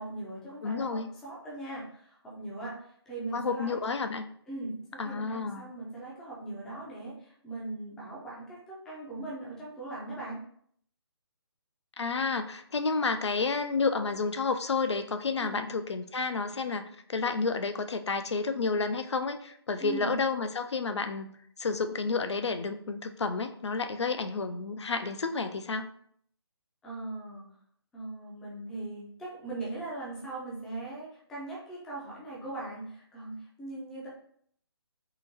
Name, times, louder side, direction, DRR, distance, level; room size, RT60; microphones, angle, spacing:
voice 1, 0.0-3.8 4.5-10.4 15.4-15.8 19.8-20.2 26.8-27.5 27.9-34.1, right 2 dB, 5° left, -6 dB, 0.4 m, -40 dB
voice 2, 0.6-1.1 3.3-4.3 5.0-5.7 12.0-16.8 17.1-21.3 21.6-25.9, left 4 dB, 85° left, 8 dB, 0.4 m, -30 dB
3.7 x 2.2 x 2.8 m, 0.64 s
figure-of-eight pair, 150°, 14 cm